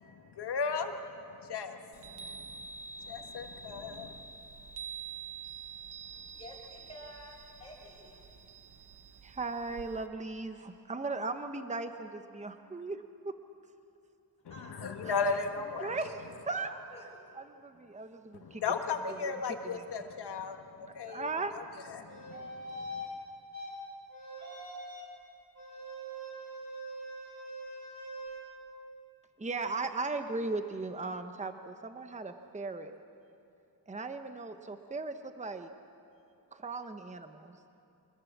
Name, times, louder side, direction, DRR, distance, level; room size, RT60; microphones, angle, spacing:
voice 1, 0.3-0.9 1.4-2.7 3.0-4.2 14.4-15.9 18.4-23.0, left 5 dB, 90° left, 5 dB, 1.7 m, -36 dB
Chime, 1.9-10.1, right 5 dB, 80° right, 1.1 m, -47 dB
voice 2, 6.0-8.6 14.4-15.4 15.8-16.2 16.6-17.4 17.9-18.1, left 1 dB, 15° left, -4 dB, 5.7 m, -51 dB
voice 3, 9.2-13.3 15.0-15.4 15.8-16.1 16.5-16.7 17.3-18.6 19.2-19.9 21.1-21.5 29.4-32.9 33.9-35.7 36.5-37.6, right 3 dB, 20° right, 8 dB, 0.9 m, -37 dB
sound 1, 22.1-23.1 23.5-23.7 24.1-25.1 25.5-28.4, right 1 dB, 45° right, 7.3 m, -43 dB
25.0 x 21.0 x 7.2 m, 2.7 s
wide cardioid pair, 110°, 39 cm